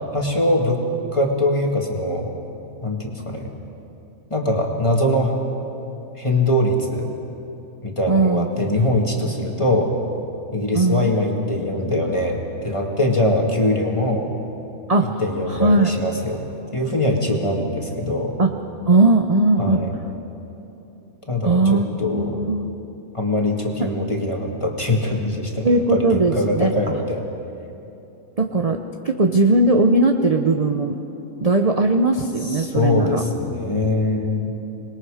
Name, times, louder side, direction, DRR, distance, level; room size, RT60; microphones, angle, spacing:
voice 1, 0.1-0.8 1.1-2.3 2.8-3.5 4.3-5.4 6.2-7.1 7.8-9.9 10.5-14.3 15.0-16.4 16.7-18.3 19.6-19.9 21.3-22.5 23.1-27.2 32.5-34.5, left 1 dB, 20° left, 0 dB, 2.1 m, -22 dB
voice 2, 8.1-8.5 10.7-11.1 14.9-15.2 15.5-15.9 18.4-18.5 18.9-19.8 21.4-21.8 22.1-22.7 23.8-23.9 25.6-26.7 28.4-31.0 31.4-33.2, right 2 dB, 35° right, 4 dB, 0.7 m, -18 dB
26.5 x 20.5 x 5.0 m, 2.9 s
omnidirectional pair, 1.5 m